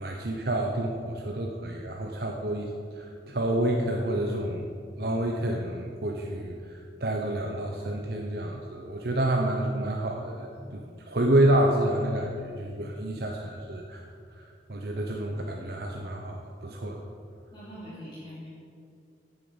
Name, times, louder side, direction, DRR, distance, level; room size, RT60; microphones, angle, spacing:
voice 1, 0.0-2.7 3.0-4.7 5.0-6.5 7.0-14.1 14.4-17.0, right 1 dB, 60° right, 1 dB, 0.9 m, -28 dB
voice 2, 10.5-10.9 17.5-18.5, equal, 25° left, -12 dB, 3.1 m, -46 dB
9.5 x 8.3 x 7.1 m, 2.3 s
head